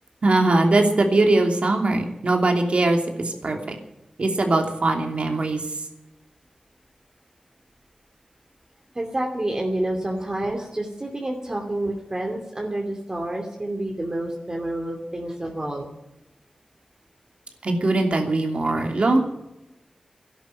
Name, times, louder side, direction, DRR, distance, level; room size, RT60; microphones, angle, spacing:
voice 1, 0.2-3.7 4.2-5.6 17.6-19.2, right 2 dB, 70° right, 3 dB, 2.9 m, -21 dB
voice 2, 8.9-15.9, right 1 dB, 35° right, 2 dB, 2.7 m, -28 dB
13.0 x 11.0 x 9.6 m, 0.92 s
wide cardioid pair, 60°, 2 cm